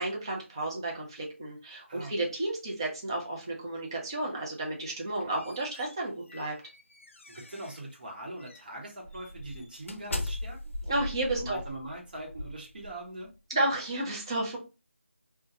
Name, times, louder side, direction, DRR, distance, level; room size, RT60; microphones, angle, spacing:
voice 1, 0.0-6.6 10.9-11.6 13.5-14.6, right 2 dB, 20° right, -2 dB, 0.5 m, -32 dB
sound 1, 5.0-7.9 8.4-8.6 9.1-13.3, left 1 dB, 70° left, 0.5 m, -40 dB
voice 2, 7.3-10.6 10.9-11.0 11.4-13.3, right 1 dB, 45° right, -1 dB, 1.0 m, -42 dB
2.2 x 2.2 x 2.8 m, 0.30 s
figure-of-eight pair, 165°, 7 cm